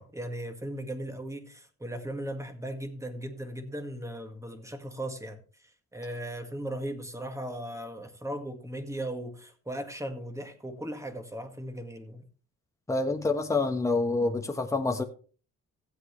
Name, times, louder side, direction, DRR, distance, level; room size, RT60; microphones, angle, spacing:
voice 1, 0.0-12.2, right 1 dB, 10° right, 1.9 m, -37 dB
voice 2, 12.9-15.0, left 3 dB, 10° left, 1.3 m, -27 dB
15.5 x 7.9 x 3.2 m
cardioid pair, 90°, 30 cm